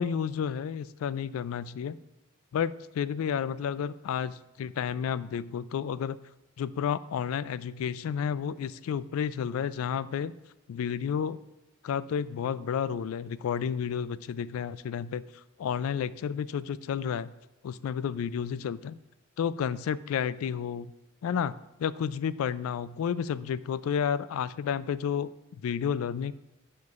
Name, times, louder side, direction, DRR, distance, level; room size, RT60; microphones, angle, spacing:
voice 1, 0.0-2.0 2.5-6.2 6.6-10.3 10.7-11.4 11.8-17.3 17.6-19.0 19.4-20.9 21.2-21.5 21.8-25.3 25.6-26.3, left 7 dB, 85° left, 17 dB, 0.3 m, -31 dB
10.5 x 6.6 x 2.4 m, 0.95 s
head